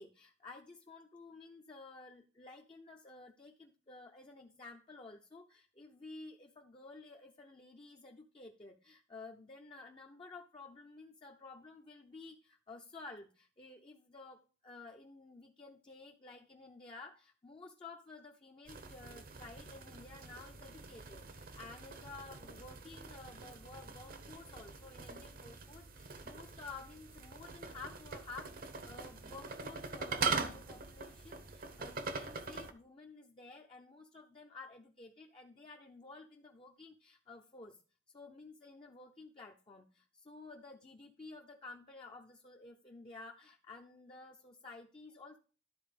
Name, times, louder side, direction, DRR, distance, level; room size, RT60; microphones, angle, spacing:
voice 1, 0.0-37.8 38.1-45.4, left 3 dB, 30° left, 1 dB, 0.6 m, -53 dB
sound 1, 18.7-32.7, right 4 dB, 50° right, 0.8 m, -43 dB
12.0 x 4.0 x 5.0 m, 0.38 s
head